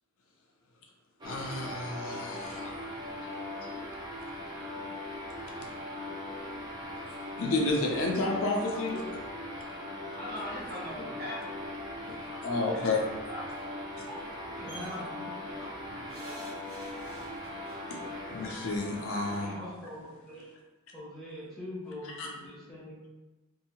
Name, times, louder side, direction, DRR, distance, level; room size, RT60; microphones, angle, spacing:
voice 1, 1.2-3.0 7.4-9.0 12.4-13.1 18.3-19.6 22.2-22.3, left 2 dB, 70° left, -1 dB, 0.6 m, -31 dB
sound 1, 1.2-19.6, left 1 dB, 20° right, 0.5 m, -40 dB
voice 2, 10.1-11.6 12.2-13.8 14.5-16.0 16.3-16.4, left 1 dB, 45° right, -6 dB, 1.0 m, -43 dB
voice 3, 14.6-15.5 19.4-20.5 20.9-23.1, left 1 dB, ahead, -9 dB, 1.0 m, -43 dB
sound 2, 14.7-15.0 16.1-17.8 18.9-19.0 19.3-19.4, equal, 65° right, 1.3 m, -47 dB
2.7 x 2.6 x 2.8 m, 1.1 s
head